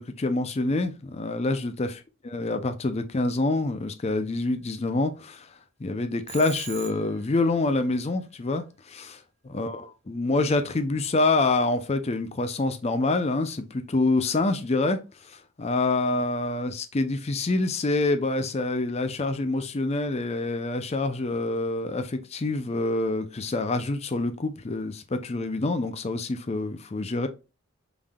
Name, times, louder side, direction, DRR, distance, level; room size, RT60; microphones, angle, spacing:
voice 1, 0.0-5.5 5.8-15.0 15.3-27.3, left 2 dB, 30° left, 0.4 m, -26 dB
Telephone, 6.3-7.4, right 9 dB, 50° right, 0.6 m, -41 dB
5.4 x 3.4 x 2.3 m
head